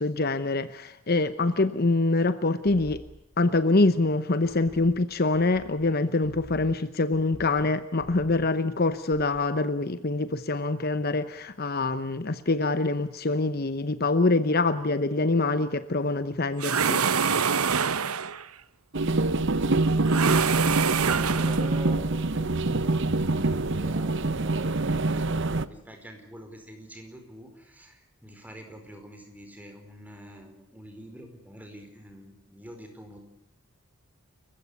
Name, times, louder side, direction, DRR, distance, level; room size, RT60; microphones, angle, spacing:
voice 1, 0.0-3.0 3.4-17.0, left 2 dB, 45° left, 0.9 m, -25 dB
sound 1, 2.6-4.2 4.4-7.7 8.0-8.6 8.9-9.5, equal, 70° left, 4.7 m, -49 dB
sound 2, 16.6-18.5 20.0-21.8, right 6 dB, 85° right, 1.0 m, -25 dB
sound 3, 18.9-25.7, right 2 dB, 55° right, 1.0 m, -25 dB
voice 2, 19.6-33.2, equal, 5° right, 4.9 m, -45 dB
29.0 x 15.5 x 8.4 m
head